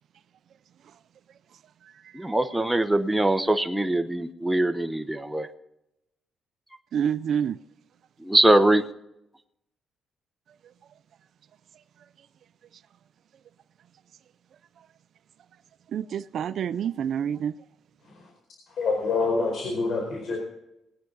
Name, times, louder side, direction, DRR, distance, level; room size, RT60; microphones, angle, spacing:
voice 1, 2.1-5.5 8.2-8.8, right 1 dB, 5° right, 1.0 m, -22 dB
voice 2, 6.9-7.6 15.9-17.5, right 8 dB, 65° right, 0.4 m, -27 dB
voice 3, 18.7-20.4, left 4 dB, 65° left, 4.4 m, -27 dB
20.0 x 9.5 x 4.0 m
cardioid pair, 90°, 0 cm